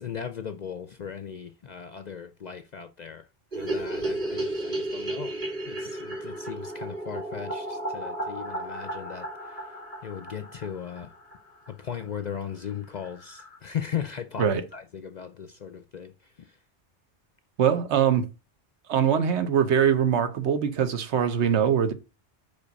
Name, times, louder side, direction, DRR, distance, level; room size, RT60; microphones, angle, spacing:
voice 1, 0.0-3.3 3.5-5.4 5.7-9.6 10.0-11.1 11.7-16.1 16.4-16.5, left 8 dB, 55° left, 0.5 m, -37 dB
sound 1, 3.5-11.7 12.0-12.1 12.3-12.4 12.7-12.8 13.0-13.6, right 1 dB, 40° right, 2.7 m, -34 dB
voice 2, 17.6-18.3 18.9-21.9, right 8 dB, 75° right, 1.1 m, -22 dB
5.3 x 4.6 x 5.3 m
omnidirectional pair, 1.2 m